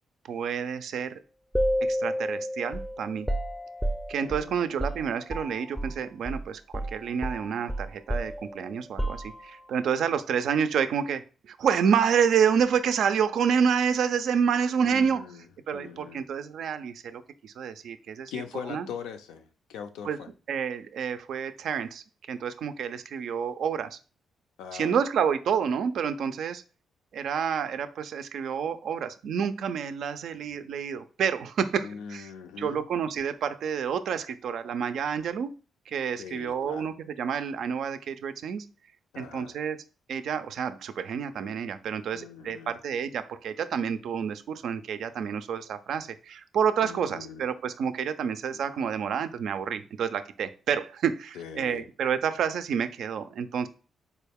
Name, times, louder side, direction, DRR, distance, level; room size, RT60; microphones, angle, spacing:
voice 1, 0.3-1.2 1.8-3.3 4.1-15.2 15.7-18.3 18.7-18.9 20.0-20.2 20.5-24.0 24.7-26.6 27.1-32.3 32.6-35.5 35.9-38.6 39.2-39.8 40.1-53.7, right 7 dB, 75° right, 11 dB, 0.3 m, -29 dB
sound 1, 1.5-6.0 6.3-6.5 6.7-9.7, equal, 5° right, 0.5 m, -31 dB
voice 2, 4.3-4.6 14.8-15.5 15.7-16.2 18.3-20.3 24.6-25.0 31.8-32.8 36.2-36.9 39.1-39.6 42.1-42.8 46.8-47.5 48.5-48.6 51.4-51.9, left 7 dB, 85° left, 7 dB, 0.4 m, -41 dB
4.1 x 2.3 x 3.4 m, 0.35 s
supercardioid pair, 60°, 0 cm